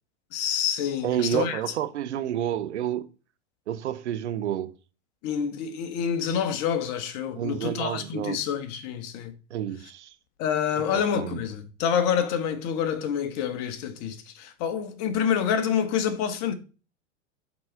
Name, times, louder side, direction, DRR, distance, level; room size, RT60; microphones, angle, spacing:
voice 1, 0.3-1.6 5.2-9.3 10.4-16.5, left 8 dB, 50° left, 1.5 m, -27 dB
voice 2, 1.0-3.0 3.7-4.8 7.4-8.5 9.5-10.1 10.7-11.4, right 11 dB, 70° right, 0.9 m, -30 dB
8.3 x 4.2 x 5.1 m
hypercardioid pair, 90°, 35 cm